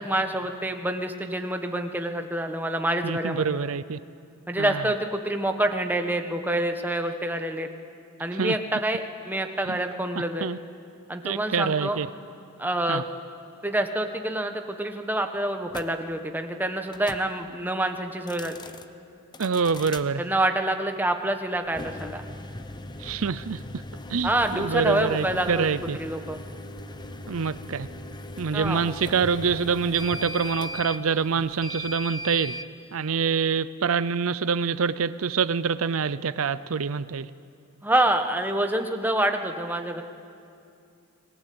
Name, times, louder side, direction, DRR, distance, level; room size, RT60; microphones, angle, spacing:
voice 1, 0.0-3.6 4.5-7.7 8.2-10.5 11.1-12.0 12.6-13.0 13.6-18.6 20.2-22.2 24.2-25.6 25.9-26.4 28.5-28.8 37.8-40.0, right 1 dB, 10° right, 5 dB, 1.4 m, -27 dB
voice 2, 3.0-4.0 4.6-4.8 8.3-8.5 9.7-9.8 10.4-10.6 11.2-12.1 12.9-13.0 19.4-20.2 23.0-23.8 24.1-26.0 27.3-27.9 28.4-32.6 32.9-37.3, right 5 dB, 75° right, 15 dB, 0.6 m, -26 dB
sound 1, 15.7-15.9 16.9-17.3 18.2-18.9 19.3-20.1 21.7-32.7, left 1 dB, 20° left, 0.9 m, -38 dB
30.0 x 21.0 x 8.7 m, 2.5 s
head